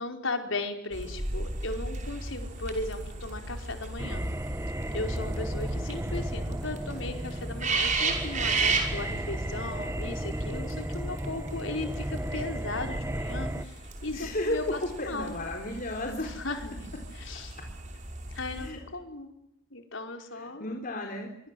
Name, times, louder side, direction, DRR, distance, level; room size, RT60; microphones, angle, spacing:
voice 1, 0.0-4.2 4.9-15.4 16.2-17.6 18.3-19.3 19.7-20.8, left 2 dB, 75° left, 5 dB, 4.8 m, -37 dB
sound 1, 0.9-18.7, right 3 dB, 40° right, 5.7 m, -35 dB
sound 2, 4.0-13.7, right 1 dB, 15° right, 1.2 m, -34 dB
voice 2, 14.1-16.3 18.6-18.8 20.4-21.3, left 1 dB, 45° left, 2 dB, 4.0 m, -33 dB
26.5 x 24.5 x 7.9 m, 0.79 s
head